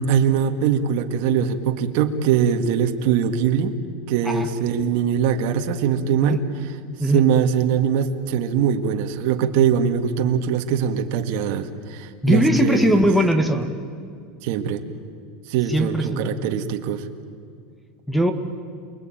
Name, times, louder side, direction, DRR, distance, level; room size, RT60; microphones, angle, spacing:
voice 1, 0.0-3.8 4.1-6.4 7.1-13.1 14.4-14.8 15.5-17.1, right 8 dB, 60° right, 6 dB, 2.0 m, -22 dB
voice 2, 12.2-13.7 15.7-16.2 18.1-18.3, equal, ahead, 8 dB, 1.7 m, -19 dB
28.5 x 21.0 x 9.2 m, 2.2 s
supercardioid pair, 150°, 0 cm